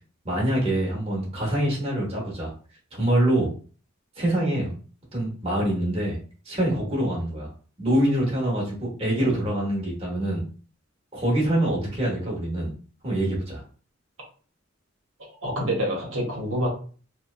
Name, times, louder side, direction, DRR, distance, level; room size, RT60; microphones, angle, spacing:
voice 1, 0.2-2.5 2.9-3.5 4.2-4.8 5.1-6.2 6.4-7.5 7.8-10.4 11.1-12.7 13.0-13.6, right 1 dB, 30° right, -4 dB, 0.9 m, -25 dB
voice 2, 15.4-16.7, equal, 80° right, -2 dB, 1.0 m, -27 dB
2.7 x 2.2 x 2.3 m, 0.40 s
head